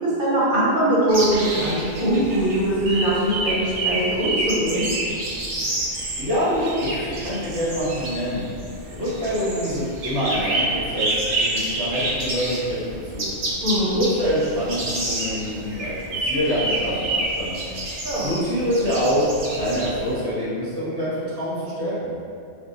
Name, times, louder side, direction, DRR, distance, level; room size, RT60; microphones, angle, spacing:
voice 1, 0.0-4.9 13.6-14.0 18.0-18.3, right 1 dB, 50° right, -9 dB, 1.0 m, -21 dB
sound 1, 1.1-20.1, right 2 dB, 90° right, 0.9 m, -28 dB
voice 2, 6.2-8.5 8.9-11.1 11.4-12.8 13.1-13.3 13.9-17.6 18.2-22.1, equal, 20° right, -10 dB, 0.9 m, -25 dB
3.4 x 2.2 x 2.7 m, 2.4 s
omnidirectional pair, 1.2 m